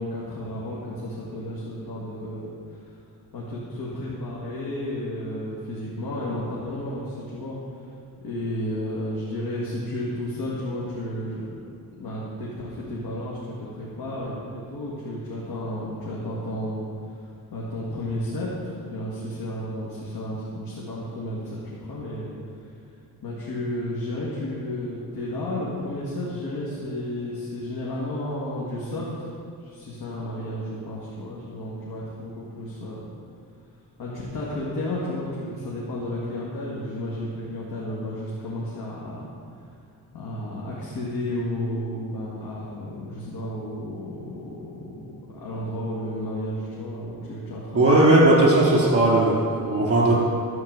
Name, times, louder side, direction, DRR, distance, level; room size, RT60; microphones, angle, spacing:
voice 1, 0.0-2.8 3.3-7.6 8.2-11.6 12.0-16.8 17.5-22.3 23.2-29.3 29.6-33.0 34.0-39.3 40.1-48.2, left 1 dB, 80° left, -6 dB, 2.1 m, -32 dB
voice 2, 47.7-50.1, right 2 dB, 40° right, -4 dB, 3.2 m, -17 dB
13.0 x 4.6 x 7.9 m, 2.4 s
cardioid pair, 90°, 37 cm